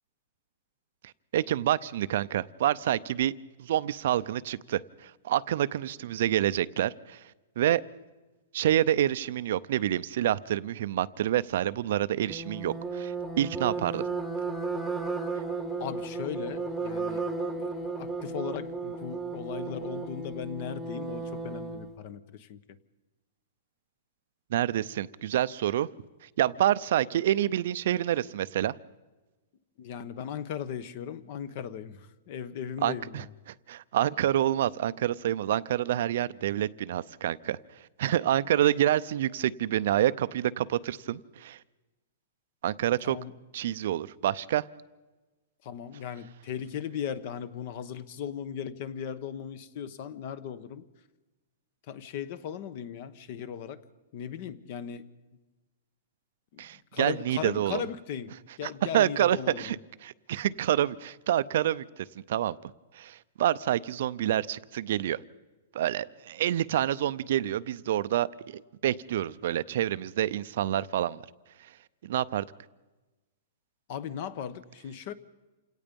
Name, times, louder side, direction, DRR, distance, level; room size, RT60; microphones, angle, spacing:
voice 1, 1.3-3.3 3.6-7.2 7.6-7.8 8.5-14.0 24.5-25.9 26.4-28.7 32.8-33.2 33.7-37.6 38.0-41.6 42.6-43.2 43.5-44.6 56.6-57.8 58.6-59.8 60.0-61.8 62.3-62.6 62.9-65.2 65.7-71.2 72.0-72.5, right 12 dB, 60° right, 15 dB, 0.6 m, -27 dB
sound 1, 12.3-21.9, right 4 dB, ahead, 1.2 m, -34 dB
voice 2, 15.8-22.6 29.8-33.3 43.0-43.3 45.6-50.8 51.9-53.8 54.1-55.1 56.5-56.6 56.9-59.8 73.9-75.1, left 8 dB, 45° left, 17 dB, 1.1 m, -37 dB
28.0 x 17.5 x 5.3 m, 1.2 s
hypercardioid pair, 165°, 0 cm